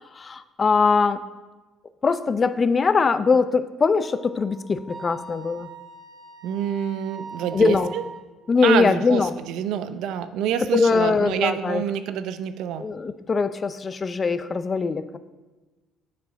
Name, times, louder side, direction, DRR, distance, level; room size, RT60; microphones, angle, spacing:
voice 1, 0.2-1.2 2.0-5.7 7.5-7.9 8.5-9.3 10.7-11.8 12.8-15.2, left 4 dB, 35° left, 13 dB, 0.4 m, -21 dB
Wind instrument woodwind instrument, 3.9-8.2, right 4 dB, 15° right, 1.2 m, -42 dB
voice 2, 6.4-8.0 8.6-12.9, right 9 dB, 75° right, 11 dB, 0.5 m, -27 dB
8.2 x 4.8 x 5.0 m, 1.2 s
supercardioid pair, 90°, 0 cm